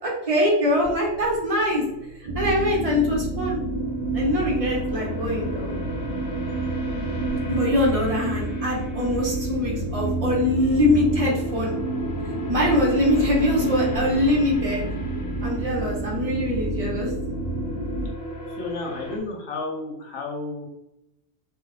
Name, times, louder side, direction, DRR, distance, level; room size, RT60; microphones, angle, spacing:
voice 1, 0.0-1.8 2.3-3.6 4.1-5.7 7.5-11.8 12.5-14.9 15.4-17.1, left 1 dB, 30° right, -3 dB, 0.9 m, -23 dB
sound 1, 0.8-19.2, equal, 60° left, 0.7 m, -38 dB
sound 2, 2.3-18.1, right 2 dB, 50° right, 0.4 m, -29 dB
voice 2, 18.6-20.7, left 3 dB, 80° left, 0 dB, 1.2 m, -32 dB
3.2 x 2.3 x 3.2 m, 0.85 s
omnidirectional pair, 1.4 m